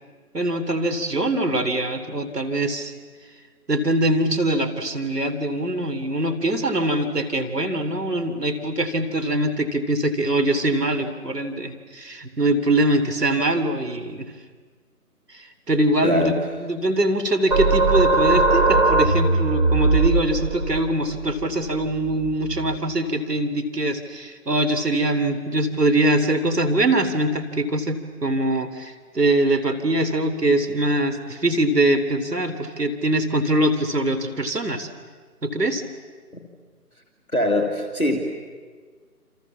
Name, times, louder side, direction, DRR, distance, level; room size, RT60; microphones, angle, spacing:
voice 1, 0.3-2.9 3.7-14.3 15.3-16.3 16.6-34.9 35.4-35.8, right 1 dB, 80° right, 8 dB, 3.4 m, -23 dB
voice 2, 16.0-16.3 36.3-36.4 37.3-38.2, left 1 dB, ahead, -13 dB, 1.1 m, -22 dB
sound 1, 17.5-22.8, right 3 dB, 25° right, 2.0 m, -20 dB
28.5 x 27.0 x 7.4 m, 1.6 s
figure-of-eight pair, 160°, 47 cm